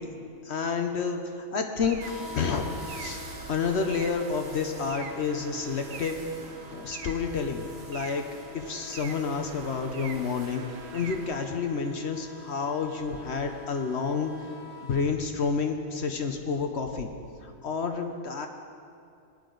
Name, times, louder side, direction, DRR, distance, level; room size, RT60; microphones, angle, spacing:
voice 1, 0.4-2.0 2.3-3.2 3.5-6.2 6.7-8.3 8.5-10.6 10.9-14.3 14.8-17.1 17.4-18.5, left 5 dB, 60° left, 5 dB, 1.0 m, -29 dB
sound 1, 1.7-11.3, right 6 dB, 80° right, 1.1 m, -44 dB
sound 2, 2.0-15.0, left 3 dB, 20° right, 1.7 m, -45 dB
18.0 x 10.5 x 3.9 m, 2.5 s
omnidirectional pair, 1.4 m